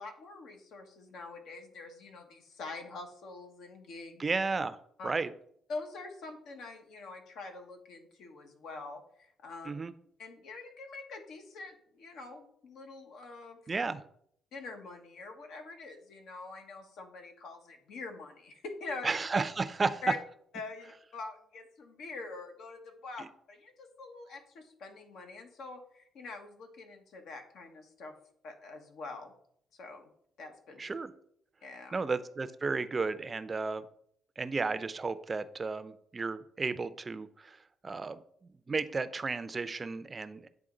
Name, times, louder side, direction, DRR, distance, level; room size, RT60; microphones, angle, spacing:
voice 1, 0.0-4.2 5.0-5.1 5.7-9.7 10.2-13.6 14.5-19.1 20.0-20.2 20.5-28.1 28.4-29.3 29.8-30.1 30.4-30.8 31.6-31.9, left 3 dB, 75° left, 4 dB, 1.2 m, -45 dB
voice 2, 4.2-4.8 5.0-5.3 9.7-9.9 13.7-14.0 19.0-20.0 23.2-23.3 30.8-31.1 31.9-33.9 34.4-37.6 37.8-38.2 38.7-40.5, right 4 dB, 30° right, 13 dB, 0.4 m, -33 dB
9.0 x 3.5 x 3.8 m, 0.67 s
cardioid pair, 90°, 0 cm